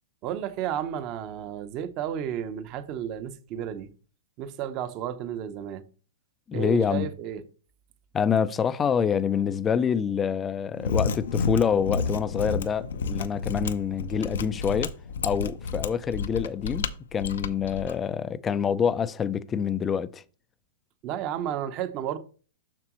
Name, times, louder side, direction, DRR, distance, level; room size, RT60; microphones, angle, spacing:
voice 1, 0.2-3.9 4.4-5.8 6.5-7.4 21.0-22.2, right 10 dB, 35° right, 0.8 m, -32 dB
voice 2, 6.5-7.1 8.1-14.9 15.2-20.2, left 7 dB, 20° left, 0.4 m, -26 dB
Mechanisms, 10.7-17.9, left 5 dB, 80° left, 0.6 m, -30 dB
7.3 x 5.9 x 3.1 m
hypercardioid pair, 140°, 0 cm